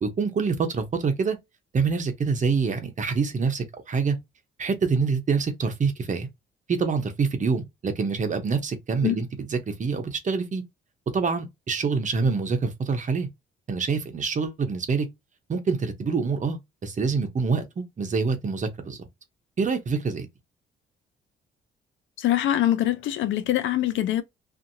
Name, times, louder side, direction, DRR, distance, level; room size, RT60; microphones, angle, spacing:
voice 1, 0.0-1.4 1.7-4.2 4.6-6.3 6.7-10.6 11.1-13.3 13.7-15.1 15.5-19.1 19.6-20.3, right 5 dB, 40° right, 0.8 m, -26 dB
voice 2, 22.2-24.2, left 12 dB, 75° left, 0.5 m, -24 dB
2.7 x 2.6 x 2.6 m
cardioid pair, 90°, 20 cm